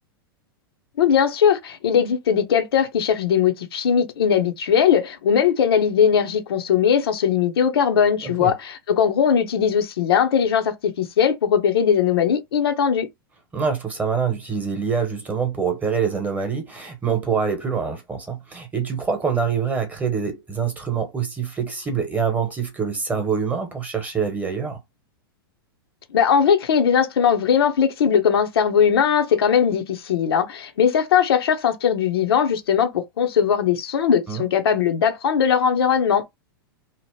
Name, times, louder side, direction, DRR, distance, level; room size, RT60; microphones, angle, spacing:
voice 1, 1.0-13.1 26.1-36.3, left 7 dB, 80° left, 0.7 m, -19 dB
voice 2, 8.2-8.5 13.5-24.8 34.3-34.5, right 6 dB, 10° right, 0.9 m, -25 dB
2.9 x 2.0 x 3.1 m
hypercardioid pair, 125°, 13 cm